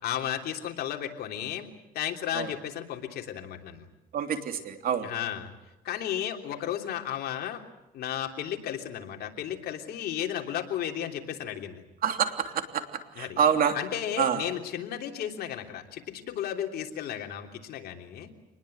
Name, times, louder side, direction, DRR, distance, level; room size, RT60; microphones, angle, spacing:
voice 1, 0.0-1.7 1.9-3.9 5.0-5.5 5.8-7.6 7.9-11.8 13.2-13.4 13.7-18.3, left 10 dB, 70° left, 4 dB, 3.3 m, -34 dB
voice 2, 4.1-5.1 12.0-13.8 14.2-14.4, right 8 dB, 60° right, 6 dB, 3.1 m, -27 dB
27.0 x 20.5 x 8.0 m, 1.0 s
cardioid pair, 110°, 17 cm